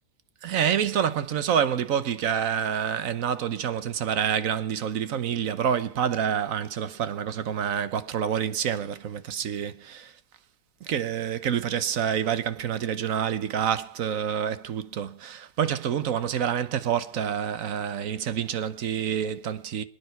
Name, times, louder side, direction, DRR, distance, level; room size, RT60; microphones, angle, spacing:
voice 1, 0.4-10.1 10.8-19.8, right 8 dB, 60° right, 1.2 m, -27 dB
27.0 x 9.6 x 4.6 m
omnidirectional pair, 1.8 m